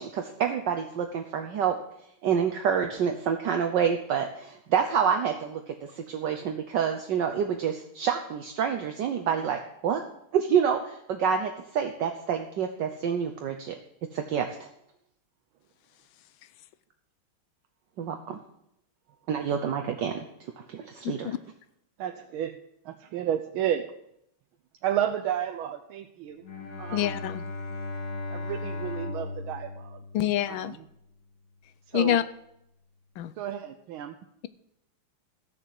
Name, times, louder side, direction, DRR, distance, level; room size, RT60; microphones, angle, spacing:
voice 1, 0.0-1.7 2.2-10.0 10.3-13.7 14.1-14.7 18.0-18.4 19.3-20.2 20.7-21.3, right 7 dB, 65° right, 5 dB, 1.4 m, -28 dB
voice 2, 21.0-21.4 26.9-27.4 30.1-30.7 31.9-32.2 33.2-33.3, left 11 dB, 80° left, 13 dB, 1.4 m, -26 dB
voice 3, 22.0-22.5 22.8-23.9 24.8-26.4 26.8-27.3 28.3-30.0 30.5-30.9 31.9-32.2 33.4-34.2, right 10 dB, 80° right, 6 dB, 1.5 m, -32 dB
Bowed string instrument, 26.4-30.8, left 3 dB, 50° left, 2.2 m, -37 dB
14.0 x 6.7 x 7.7 m, 0.77 s
omnidirectional pair, 2.3 m